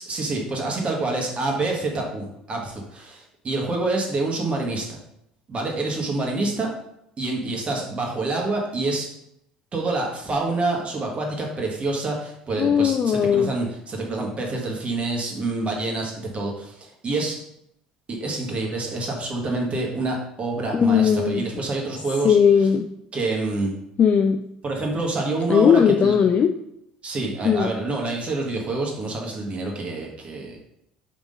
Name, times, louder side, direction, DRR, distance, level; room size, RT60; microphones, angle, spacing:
voice 1, 0.0-4.9 5.5-6.7 7.2-9.1 9.7-17.4 18.1-22.4 23.1-23.7 24.6-26.2 27.0-30.6, right 2 dB, 30° right, 0 dB, 1.7 m, -27 dB
voice 2, 12.6-13.5 20.7-21.4 22.2-22.9 24.0-24.4 25.5-26.5 27.4-27.7, left 7 dB, 40° left, 6 dB, 0.4 m, -18 dB
4.9 x 3.7 x 5.3 m, 0.78 s
figure-of-eight pair, 60°, 4 cm